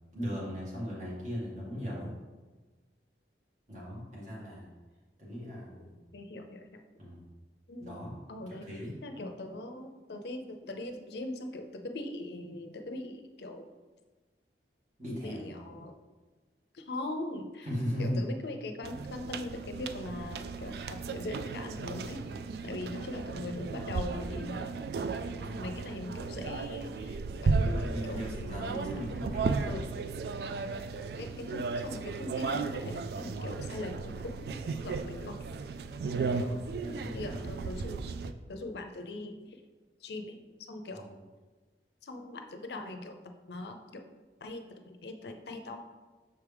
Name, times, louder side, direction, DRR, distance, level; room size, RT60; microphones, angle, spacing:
voice 1, 0.1-2.1 3.7-4.7 5.2-6.0 7.0-7.2 7.8-8.1 8.5-9.0 15.0-15.5 17.6-18.3 22.8-23.0 25.4-25.7 27.5-29.9 34.7-34.9 36.3-37.4 40.9-41.1, equal, 45° right, -6 dB, 2.0 m, -38 dB
voice 2, 5.8-6.7 7.7-7.9 8.3-8.7 9.0-13.6 15.2-16.0 16.7-17.7 18.0-22.2 22.6-24.8 25.6-28.2 28.5-29.0 29.7-30.0 31.2-35.4 37.1-38.0 38.5-39.5 40.0-40.4 40.7-41.1 42.0-43.2 43.5-44.0 44.4-45.8, left 2 dB, 70° left, 5 dB, 0.6 m, -41 dB
sound 1, 18.8-38.3, right 4 dB, 65° right, 0.3 m, -35 dB
6.4 x 4.7 x 3.4 m, 1.3 s
head